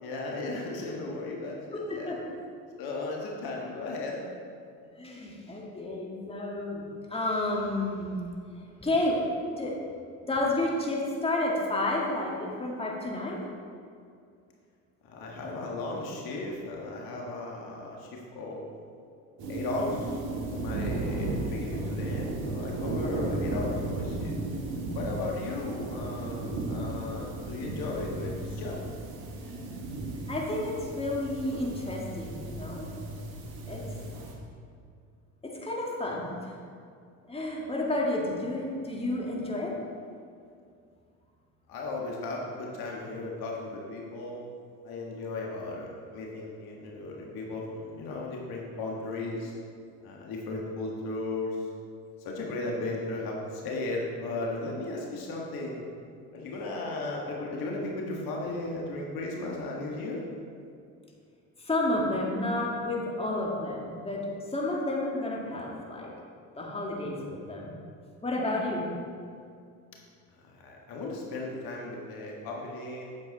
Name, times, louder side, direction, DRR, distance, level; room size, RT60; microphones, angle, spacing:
voice 1, 0.0-2.2 2.8-4.2 15.0-18.1 18.4-18.6 19.5-20.2 20.5-24.4 25.0-28.8 41.7-44.4 44.8-49.5 50.0-51.6 52.2-55.8 56.3-60.2 70.5-73.1, left 2 dB, 60° left, -2 dB, 1.8 m, -36 dB
voice 2, 1.7-2.2 5.0-6.8 7.1-8.2 8.8-9.2 9.6-9.8 10.2-13.4 30.3-32.9 33.7-33.8 35.4-36.5 37.3-39.7 61.6-66.1 66.6-67.7 68.2-68.9, left 2 dB, 15° left, -3 dB, 2.0 m, -31 dB
sound 1, 19.4-34.3, right 2 dB, 60° right, 1.7 m, -35 dB
9.3 x 7.1 x 4.1 m, 2.3 s
hypercardioid pair, 70°, 41 cm